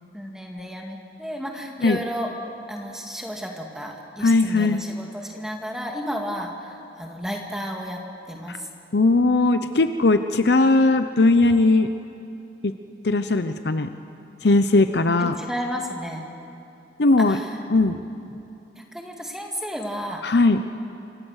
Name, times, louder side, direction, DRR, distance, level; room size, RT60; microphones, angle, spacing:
voice 1, 0.1-2.3 2.7-8.0 8.3-8.6 15.2-16.3 17.3-17.5 18.9-20.2, equal, 5° right, 1 dB, 2.1 m, -32 dB
voice 2, 4.2-4.8 8.5-8.6 8.9-11.9 12.6-12.7 13.0-13.9 14.4-15.4 17.0-17.4 17.7-18.0 20.2-20.6, left 2 dB, 70° left, 9 dB, 0.7 m, -19 dB
28.0 x 25.5 x 6.5 m, 2.8 s
head